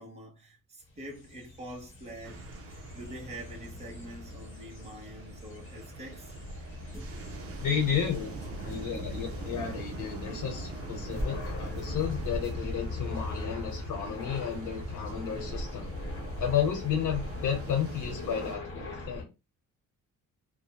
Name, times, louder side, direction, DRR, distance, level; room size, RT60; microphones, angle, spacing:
voice 1, 0.0-2.4 2.7-6.5, right 1 dB, 20° right, 0.9 m, -45 dB
sound 1, 0.9-19.2, left 2 dB, 40° left, 1.0 m, -40 dB
sound 2, 2.2-18.6, right 6 dB, 45° right, 0.5 m, -45 dB
sound 3, 6.9-9.0 10.4-10.6 11.0-14.6 15.1-15.2, equal, 10° left, 0.9 m, -43 dB
voice 2, 7.6-8.4 8.6-15.9 16.4-19.3, left 8 dB, 70° left, 1.1 m, -32 dB
2.5 x 2.1 x 2.9 m
cardioid pair, 95°, 33 cm